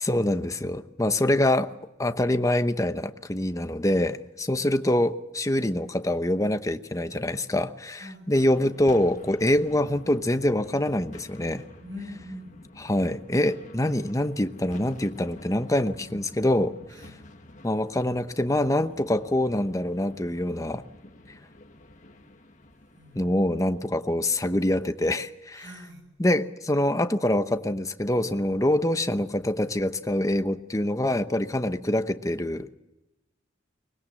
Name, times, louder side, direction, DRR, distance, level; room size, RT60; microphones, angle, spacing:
voice 1, 0.0-1.7 2.0-11.6 12.8-16.8 17.6-20.8 23.1-25.6 26.2-32.7, left 1 dB, 15° left, 0.9 m, -25 dB
voice 2, 8.0-8.3 11.8-12.6 16.9-17.2 22.9-23.4 25.5-26.1, left 1 dB, 70° right, 7.8 m, -43 dB
sound 1, 8.3-24.7, left 1 dB, 40° left, 1.7 m, -49 dB
23.5 x 20.5 x 7.5 m
head